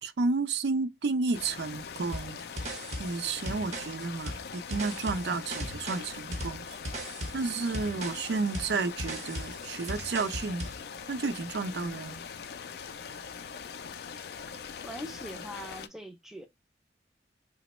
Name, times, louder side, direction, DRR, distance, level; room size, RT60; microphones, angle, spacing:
voice 1, 0.0-2.4 3.0-6.7 7.3-10.6 11.1-12.2, right 4 dB, 70° right, 0.4 m, -31 dB
sound 1, 1.3-15.9, left 6 dB, 60° left, 0.3 m, -42 dB
sound 2, 2.1-10.8, right 1 dB, 40° right, 0.7 m, -38 dB
voice 2, 14.8-16.5, equal, ahead, 0.5 m, -42 dB
2.9 x 2.1 x 4.1 m
head